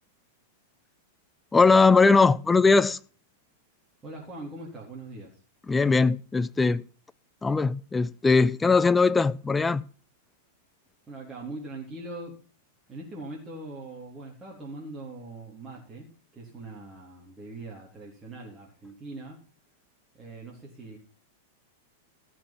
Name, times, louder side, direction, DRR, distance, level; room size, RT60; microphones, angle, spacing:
voice 1, 1.5-3.0 5.7-6.8 7.4-9.8, left 4 dB, 10° left, 0.5 m, -20 dB
voice 2, 4.0-5.4 11.1-12.4 12.9-19.4 20.1-21.0, right 2 dB, 15° right, 3.7 m, -41 dB
15.0 x 6.2 x 5.8 m
figure-of-eight pair, 95°, 0 cm